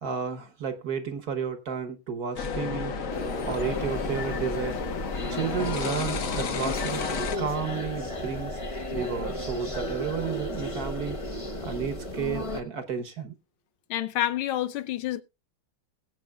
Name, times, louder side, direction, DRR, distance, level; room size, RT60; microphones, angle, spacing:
voice 1, 0.0-2.9 3.5-4.8 5.3-7.0 7.4-8.6 8.9-11.2 11.5-13.3, right 6 dB, 55° right, 1.3 m, -32 dB
sound 1, 2.4-7.4, left 5 dB, 50° left, 1.2 m, -32 dB
sound 2, 3.1-12.6, left 1 dB, 25° left, 0.7 m, -34 dB
voice 2, 13.9-15.2, left 12 dB, 75° left, 1.5 m, -28 dB
21.0 x 7.9 x 2.3 m
omnidirectional pair, 2.3 m